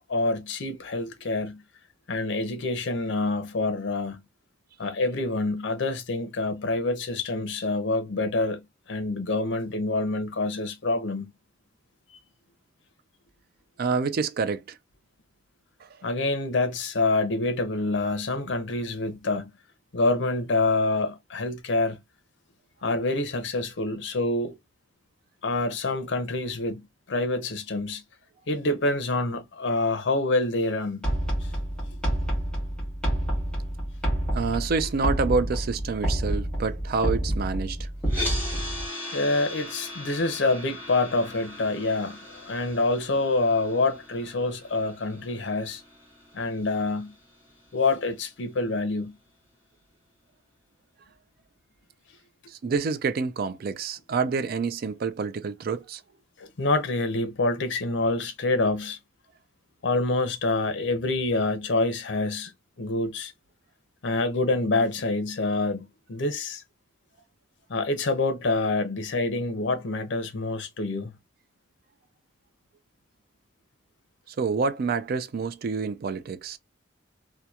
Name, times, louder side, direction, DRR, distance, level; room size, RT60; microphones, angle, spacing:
voice 1, 0.1-1.6 2.1-4.2 4.8-8.6 8.9-11.3 12.1-12.2 16.0-19.5 19.9-22.0 22.8-24.5 25.4-28.0 28.5-31.0 39.1-45.8 46.3-47.1 47.7-49.1 56.4-59.0 59.8-62.5 62.8-63.3 64.0-66.6 67.7-71.1, left 2 dB, 70° left, 0.6 m, -26 dB
voice 2, 13.8-14.8 34.3-37.9 52.6-56.0 74.4-76.6, right 4 dB, 55° right, 0.4 m, -27 dB
sound 1, 31.0-38.9, right 1 dB, 5° left, 0.9 m, -28 dB
sound 2, 38.0-48.2, left 1 dB, 10° right, 1.3 m, -39 dB
2.8 x 2.2 x 2.3 m
head